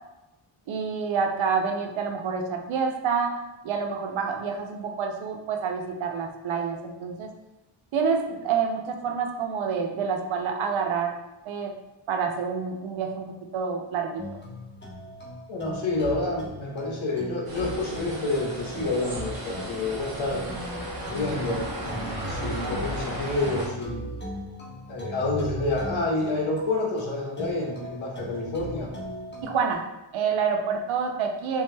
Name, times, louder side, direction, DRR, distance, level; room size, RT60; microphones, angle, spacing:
voice 1, 0.7-3.4 3.6-7.3 7.9-11.2 11.5-11.7 12.1-14.2 29.4-29.8 30.1-31.6, right 6 dB, 85° right, 3 dB, 0.6 m, -28 dB
sound 1, 14.2-29.7, equal, 25° left, 0.5 m, -39 dB
voice 2, 15.5-20.5 21.1-24.1 24.9-28.9, left 2 dB, 80° left, -2 dB, 0.9 m, -29 dB
sound 2, 17.5-23.7, right 1 dB, 50° right, 0.9 m, -35 dB
3.4 x 2.2 x 3.2 m, 1.0 s
wide cardioid pair, 155°, 46 cm